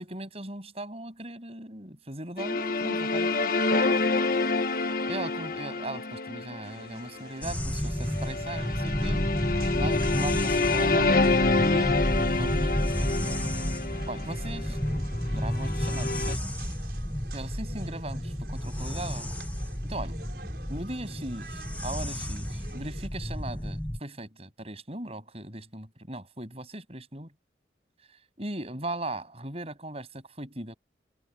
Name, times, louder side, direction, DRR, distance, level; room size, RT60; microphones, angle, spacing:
voice 1, 0.0-3.6 5.1-9.3 9.7-13.3 14.1-15.0 15.3-16.4 17.3-18.2 18.5-19.3 19.8-20.2 20.7-27.3 28.4-30.8, right 1 dB, 35° right, 7.8 m, -38 dB
sound 1, 2.4-16.4, left 3 dB, 50° left, 1.4 m, -28 dB
sound 2, 6.6-23.1, right 4 dB, 60° right, 6.7 m, -50 dB
sound 3, 7.4-24.0, equal, 10° left, 1.0 m, -31 dB
head